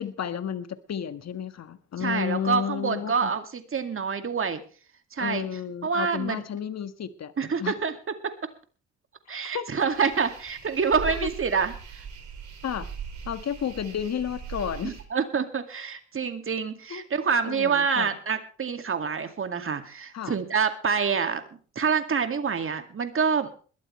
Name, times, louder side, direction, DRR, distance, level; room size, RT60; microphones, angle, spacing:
voice 1, 0.0-3.3 5.2-7.3 7.6-7.7 9.5-9.7 11.1-11.3 12.6-12.9 13.2-15.0 16.9-17.0 17.4-18.1 20.1-20.4, left 8 dB, 50° left, 12 dB, 1.6 m, -32 dB
voice 2, 2.0-4.6 5.1-5.4 5.8-6.4 7.4-7.9 9.3-12.0 14.8-21.4 21.8-23.5, right 6 dB, 40° right, 8 dB, 2.2 m, -27 dB
sound 1, 9.9-15.0, right 7 dB, 55° right, 5.5 m, -40 dB
21.5 x 13.0 x 3.2 m, 0.39 s
hypercardioid pair, 55°, 34 cm